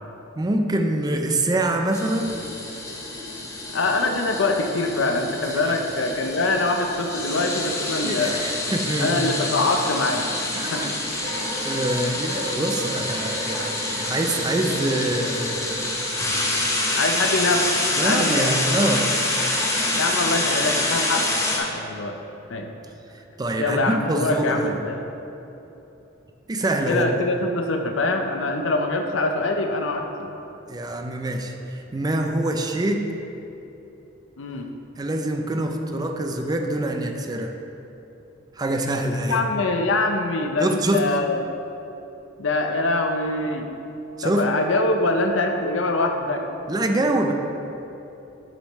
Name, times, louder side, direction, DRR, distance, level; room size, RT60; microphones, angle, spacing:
voice 1, 0.4-2.4 5.4-5.8 6.4-6.5 8.0-9.3 10.5-11.0 11.6-16.1 17.9-19.5 23.4-24.8 26.5-27.1 30.7-33.1 35.0-37.6 38.6-39.4 40.6-41.1 44.2-44.5 46.7-47.3, right 1 dB, 20° right, 4 dB, 0.5 m, -25 dB
sound 1, 1.9-21.6, left 2 dB, 15° left, 0.8 m, -27 dB
voice 2, 3.7-8.4 9.0-10.3 10.7-10.9 16.9-18.5 19.9-22.2 22.5-22.7 23.6-25.0 26.9-30.3 34.4-34.7 39.2-41.4 42.4-43.7 44.2-46.5, left 2 dB, 80° left, 4 dB, 0.7 m, -24 dB
sound 2, 11.2-18.6, equal, 40° right, 0.9 m, -39 dB
7.9 x 6.7 x 3.1 m, 2.9 s
head